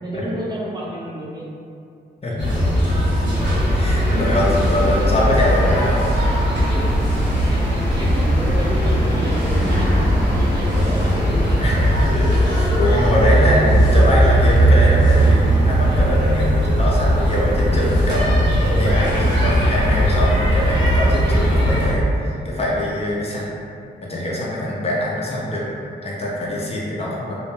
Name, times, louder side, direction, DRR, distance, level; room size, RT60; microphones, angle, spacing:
voice 1, 0.0-1.6 2.3-3.0 3.8-5.7 7.2-7.7 8.0-11.1 11.5-11.6, equal, 20° right, -6 dB, 0.5 m, -32 dB
sound 1, 2.4-21.9, equal, 80° right, 0.7 m, -18 dB
sound 2, 3.3-11.9, equal, 10° left, 1.0 m, -32 dB
voice 2, 3.7-6.0 11.6-18.4 18.7-22.0 22.4-23.5 24.0-25.7 26.0-27.4, left 1 dB, 35° left, -5 dB, 0.5 m, -23 dB
2.4 x 2.1 x 3.1 m, 2.5 s
cardioid pair, 75°, 18 cm